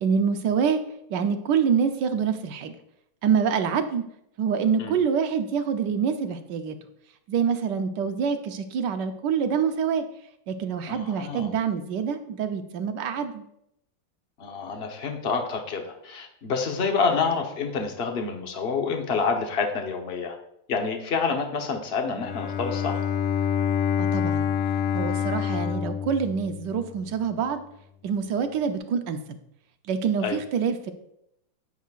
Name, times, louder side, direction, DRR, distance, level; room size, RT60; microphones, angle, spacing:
voice 1, 0.0-0.8 1.1-2.7 3.2-4.0 4.4-6.8 7.3-10.0 10.5-13.4 24.0-24.4 24.9-27.6 28.0-29.2 29.9-30.9, right 6 dB, 70° right, 7 dB, 1.3 m, -26 dB
voice 2, 10.9-11.5 14.4-20.4 20.7-23.0 30.2-30.4, left 5 dB, 40° left, 3 dB, 0.9 m, -28 dB
Bowed string instrument, 22.1-27.1, left 8 dB, 75° left, 1.4 m, -27 dB
10.0 x 8.4 x 2.4 m, 0.76 s
omnidirectional pair, 2.2 m